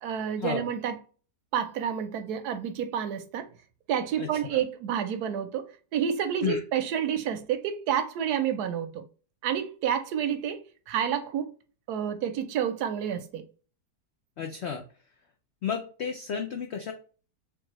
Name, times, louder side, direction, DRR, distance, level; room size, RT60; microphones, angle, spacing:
voice 1, 0.0-1.0 1.5-3.5 3.9-9.0 9.4-11.5 11.9-13.4, right 8 dB, 75° right, 1.1 m, -29 dB
voice 2, 4.2-4.6 6.4-6.6 14.4-14.8 15.6-16.9, left 7 dB, 80° left, 0.6 m, -32 dB
3.4 x 3.3 x 3.0 m
omnidirectional pair, 1.8 m